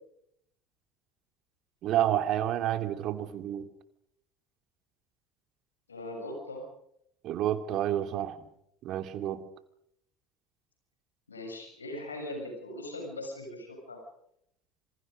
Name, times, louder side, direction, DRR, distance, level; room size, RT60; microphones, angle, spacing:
voice 1, 1.8-3.7 7.2-8.4 8.8-9.4, right 11 dB, 55° right, 9 dB, 2.9 m, -29 dB
voice 2, 5.9-6.6 11.3-14.0, left 1 dB, 90° left, 3 dB, 7.0 m, -40 dB
27.5 x 27.0 x 5.3 m, 0.73 s
hypercardioid pair, 65°, 0 cm